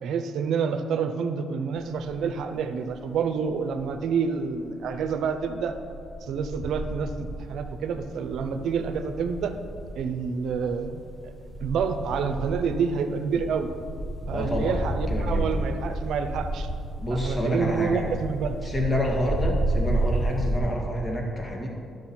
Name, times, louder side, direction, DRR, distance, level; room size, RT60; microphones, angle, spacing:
voice 1, 0.0-5.8 6.2-7.1 7.5-9.5 10.0-11.3 11.6-13.7 14.3-16.7 17.1-18.7, right 6 dB, 75° right, 8 dB, 0.7 m, -28 dB
sound 1, 1.8-2.4 2.8-4.1 4.6-20.6, right 1 dB, 5° left, 1.1 m, -32 dB
voice 2, 14.3-14.8 15.1-15.5 17.0-18.1 18.6-21.7, equal, 25° left, -1 dB, 1.9 m, -28 dB
11.5 x 6.4 x 4.4 m, 2.4 s
cardioid pair, 90°, 0 cm